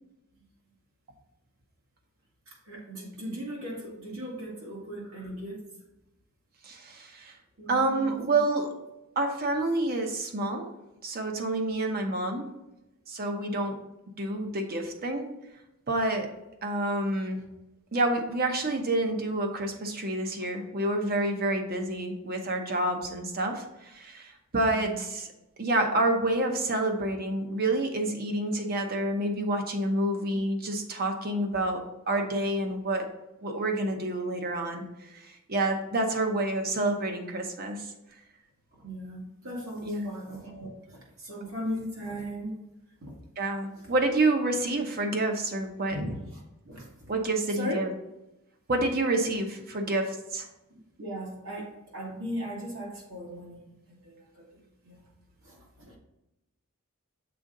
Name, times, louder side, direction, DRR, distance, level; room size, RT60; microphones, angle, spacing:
voice 1, 2.5-5.6 7.6-8.2 24.7-25.0 38.8-42.5 43.0-43.1 45.9-47.1 47.6-47.8 50.7-55.0 55.4-56.0, equal, 70° right, -3 dB, 1.9 m, -38 dB
voice 2, 6.6-7.3 7.7-8.7 9.2-10.7 11.0-12.5 13.1-13.8 14.2-15.3 15.9-16.3 16.6-17.4 17.9-25.3 25.6-33.1 33.4-37.9 39.8-40.1 43.4-46.0 47.1-47.9 48.7-50.5, right 2 dB, 45° right, 4 dB, 0.8 m, -28 dB
6.9 x 3.7 x 3.8 m, 0.94 s
head